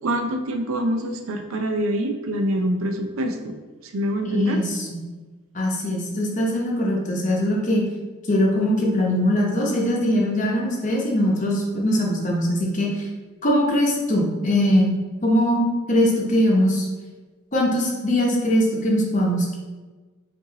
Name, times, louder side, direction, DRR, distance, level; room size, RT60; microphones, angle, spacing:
voice 1, 0.0-3.5 3.8-4.6, equal, 85° right, 5 dB, 0.5 m, -25 dB
voice 2, 4.2-4.7 5.5-7.8 8.3-13.1 13.4-16.9 17.5-19.6, equal, 40° left, -2 dB, 0.8 m, -21 dB
5.3 x 2.6 x 2.9 m, 1.3 s
head